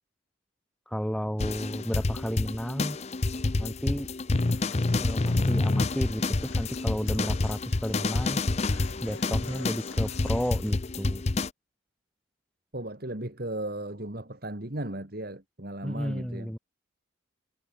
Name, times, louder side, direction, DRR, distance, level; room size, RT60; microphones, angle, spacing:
voice 1, 0.9-3.0 3.6-4.1 5.0-8.4 9.0-11.2 15.8-16.6, equal, 5° left, 2.6 m, -32 dB
sound 1, 1.4-11.5, left 2 dB, 30° left, 0.6 m, -28 dB
Human voice / Acoustic guitar, 4.3-10.7, left 3 dB, 80° left, 6.6 m, -48 dB
voice 2, 12.7-16.5, right 1 dB, 50° right, 2.6 m, -36 dB
head